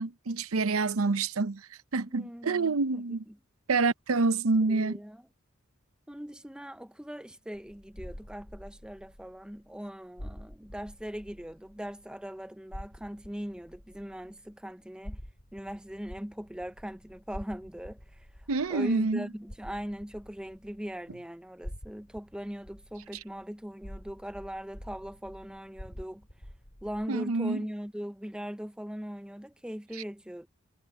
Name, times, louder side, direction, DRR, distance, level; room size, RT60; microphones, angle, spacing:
voice 1, 0.0-1.6 1.9-3.2 3.7-5.0 18.5-19.3 27.1-27.6, right 3 dB, 90° right, 0.7 m, -27 dB
voice 2, 2.1-3.4 4.5-5.2 6.1-15.2 15.5-26.3 26.8-30.5, equal, 5° right, 0.5 m, -40 dB
sound 1, 7.5-12.3 12.7-21.2 21.6-27.1, equal, 45° left, 4.5 m, -48 dB
head